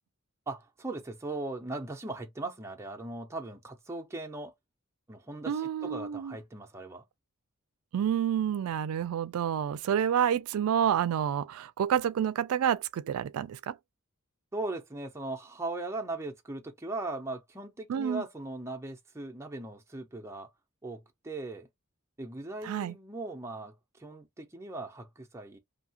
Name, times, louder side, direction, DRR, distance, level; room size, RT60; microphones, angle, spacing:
voice 1, 0.5-4.5 5.1-7.0 14.5-20.5 20.8-21.7 22.2-25.6, right 2 dB, 15° right, 0.5 m, -39 dB
voice 2, 5.5-6.3 7.9-13.8 17.9-18.2 22.6-22.9, right 9 dB, 85° right, 0.3 m, -29 dB
2.7 x 2.4 x 2.8 m
head